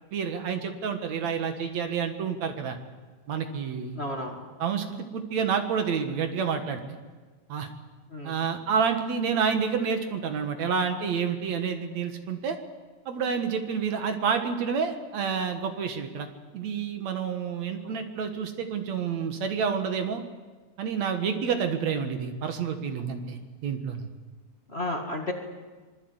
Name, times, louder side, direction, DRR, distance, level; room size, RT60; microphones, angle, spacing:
voice 1, 0.1-2.8 3.3-4.0 4.6-6.8 7.5-7.7 8.2-12.6 13.1-16.3 16.5-20.2 20.8-24.1, right 6 dB, 65° right, 6 dB, 2.8 m, -29 dB
voice 2, 3.9-4.5 8.1-8.5 17.8-18.0 22.9-23.0 24.7-25.3, left 1 dB, 25° left, 1 dB, 2.0 m, -33 dB
25.0 x 21.0 x 8.1 m, 1.4 s
omnidirectional pair, 3.4 m